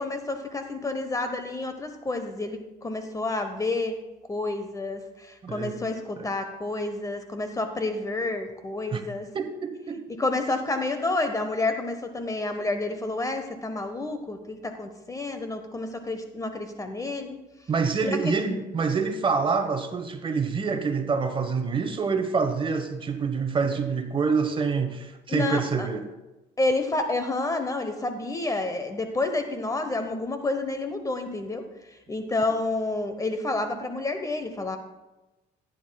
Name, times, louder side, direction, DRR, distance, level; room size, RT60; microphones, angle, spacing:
voice 1, 0.0-4.0 4.3-9.3 10.2-17.4 18.0-18.4 25.3-25.9 26.6-31.7 32.1-34.8, left 2 dB, 20° left, 7 dB, 0.8 m, -29 dB
voice 2, 5.4-5.7 6.2-6.3 8.9-9.0 9.3-10.0 17.7-26.1, right 5 dB, 30° right, 7 dB, 1.0 m, -26 dB
14.5 x 9.4 x 2.3 m, 1.0 s
cardioid pair, 110°, 17 cm